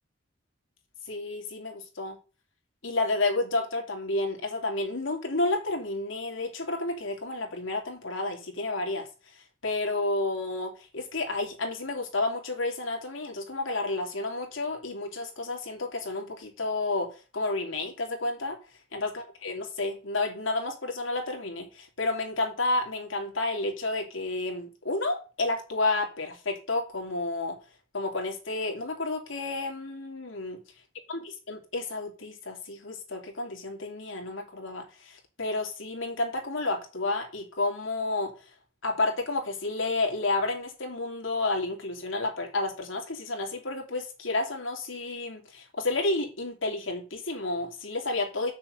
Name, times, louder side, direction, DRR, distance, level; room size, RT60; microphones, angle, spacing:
voice 1, 1.1-2.2 2.8-9.1 9.3-18.6 18.9-27.6 27.9-30.6 31.1-31.2 31.5-38.3 38.8-48.5, left 2 dB, 85° left, 2.9 m, -31 dB
7.7 x 6.5 x 6.5 m
head